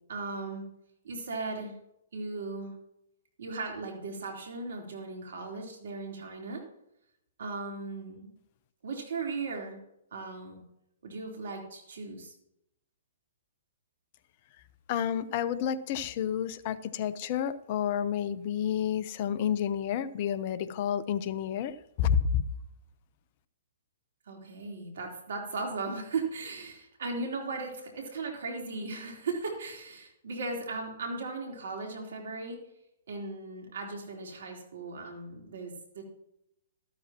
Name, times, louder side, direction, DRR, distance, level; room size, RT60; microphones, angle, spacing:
voice 1, 0.1-0.6 1.0-1.8 2.1-2.7 3.4-6.6 7.4-8.3 8.8-9.8 10.1-10.6 11.0-12.3 24.3-32.6 33.1-36.0, right 3 dB, 70° right, 3.6 m, -37 dB
voice 2, 14.9-22.5, left 8 dB, 45° left, 0.8 m, -30 dB
13.0 x 12.5 x 3.0 m
hypercardioid pair, 130°, 0 cm